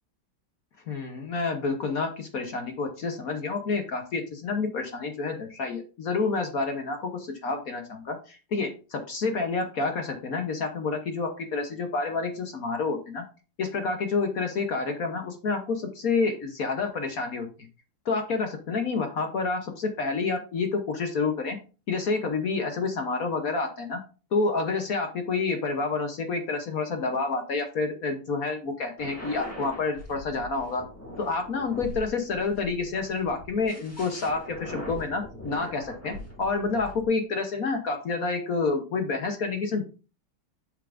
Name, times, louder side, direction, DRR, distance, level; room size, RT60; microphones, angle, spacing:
voice 1, 0.9-13.2 13.6-17.5 18.0-21.6 21.9-24.0 24.3-30.8 31.2-39.8, left 4 dB, 55° left, 5 dB, 1.2 m, -29 dB
sound 1, 29.0-37.1, left 1 dB, 5° left, 2.0 m, -42 dB
8.2 x 6.9 x 2.6 m, 0.35 s
omnidirectional pair, 2.2 m